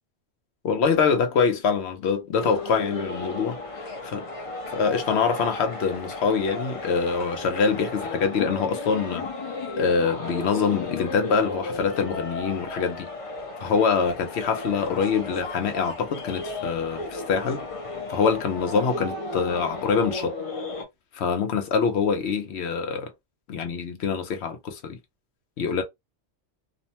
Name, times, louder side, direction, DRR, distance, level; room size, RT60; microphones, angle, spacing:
voice 1, 0.6-4.3 4.7-9.3 9.8-13.1 13.6-17.6 18.1-20.3 21.1-23.1 23.5-25.0 25.6-25.8, left 5 dB, 70° left, 0.9 m, -25 dB
sound 1, 2.3-20.8, left 2 dB, 35° left, 0.6 m, -34 dB
2.6 x 2.1 x 2.8 m
omnidirectional pair, 1.2 m